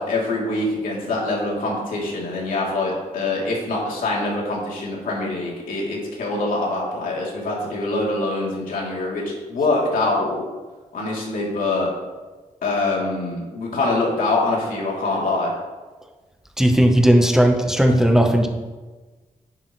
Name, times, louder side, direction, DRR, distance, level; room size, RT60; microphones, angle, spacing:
voice 1, 0.0-9.2 9.5-10.4 10.9-11.9 12.6-15.5, left 2 dB, 85° left, -3 dB, 3.1 m, -24 dB
voice 2, 16.6-18.5, equal, 5° right, 4 dB, 0.9 m, -16 dB
10.5 x 10.0 x 3.2 m, 1.3 s
wide cardioid pair, 120°, 14 cm